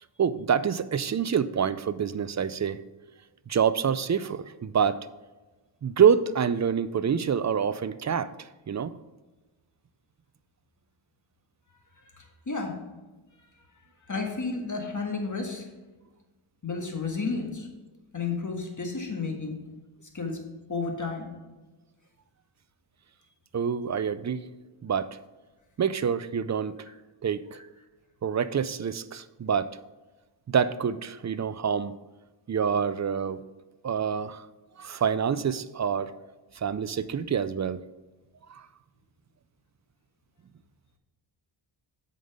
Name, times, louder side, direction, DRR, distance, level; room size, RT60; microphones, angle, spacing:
voice 1, 0.2-2.8 3.5-5.0 5.8-8.9 23.5-24.4 24.8-25.2 25.8-26.7 27.2-27.6 28.2-29.7 30.5-31.9 32.5-33.4 33.8-34.5 34.8-36.1 36.5-37.8 38.5-38.7, right 7 dB, 40° right, 15 dB, 0.4 m, -26 dB
voice 2, 12.2-12.8 14.1-15.6 16.6-17.7 18.1-19.6 20.1-20.4 20.7-21.3, left 4 dB, 35° left, 2 dB, 1.7 m, -32 dB
7.7 x 5.3 x 5.1 m, 1.2 s
wide cardioid pair, 70°, 49 cm